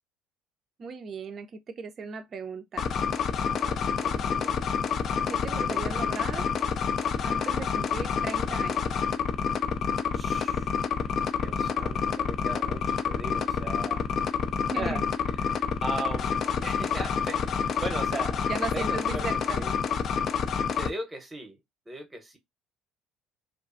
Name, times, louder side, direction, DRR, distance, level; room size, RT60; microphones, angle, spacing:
voice 1, 0.8-2.9 5.3-6.5 7.2-9.0 14.7-15.1 18.5-19.7, right 5 dB, 40° right, 0.4 m, -37 dB
sound 1, 2.8-20.9, left 6 dB, 45° left, 0.3 m, -28 dB
voice 2, 3.5-4.6 5.6-5.8 7.4-7.7 10.1-11.1 11.4-14.0 14.7-15.0 15.3-18.4 18.7-19.7 20.8-21.6 21.9-22.4, right 2 dB, 20° right, 0.8 m, -39 dB
2.5 x 2.3 x 2.4 m
figure-of-eight pair, 55°, 0 cm